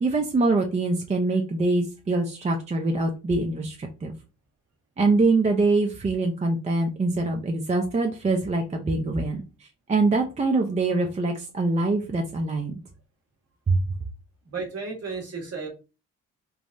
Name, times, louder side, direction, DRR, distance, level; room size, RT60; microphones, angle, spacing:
voice 1, 0.0-4.1 5.0-9.4 9.9-12.7 13.7-13.8, right 3 dB, 20° right, 3 dB, 0.5 m, -24 dB
voice 2, 14.4-15.7, right 4 dB, 45° right, 1 dB, 1.3 m, -33 dB
3.5 x 2.0 x 2.5 m, 0.31 s
hypercardioid pair, 45°, 34 cm